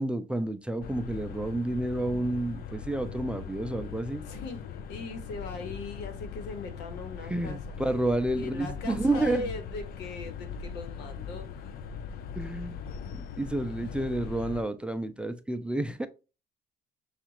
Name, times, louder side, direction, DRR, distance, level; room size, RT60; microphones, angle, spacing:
voice 1, 0.0-4.2 7.2-9.5 12.4-12.8 13.4-16.1, right 2 dB, 5° right, 0.4 m, -30 dB
sound 1, 0.8-14.6, left 6 dB, 65° left, 0.5 m, -40 dB
voice 2, 4.3-7.8 8.4-11.8, left 3 dB, 85° left, 1.2 m, -40 dB
6.7 x 2.4 x 2.9 m
cardioid pair, 110°, 17 cm